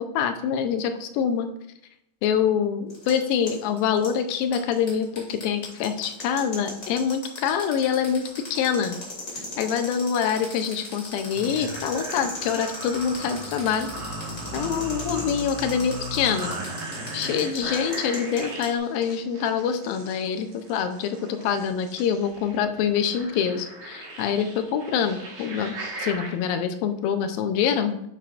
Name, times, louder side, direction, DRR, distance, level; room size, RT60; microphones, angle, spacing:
voice 1, 0.0-1.5 2.2-9.0 9.4-13.9 14.5-16.5 17.1-28.0, left 7 dB, 80° left, 7 dB, 2.3 m, -25 dB
sound 1, 2.9-18.7, left 2 dB, 25° left, 2.1 m, -38 dB
sound 2, 11.3-26.3, right 1 dB, 50° right, 2.3 m, -37 dB
10.0 x 6.2 x 2.4 m, 0.78 s
omnidirectional pair, 4.4 m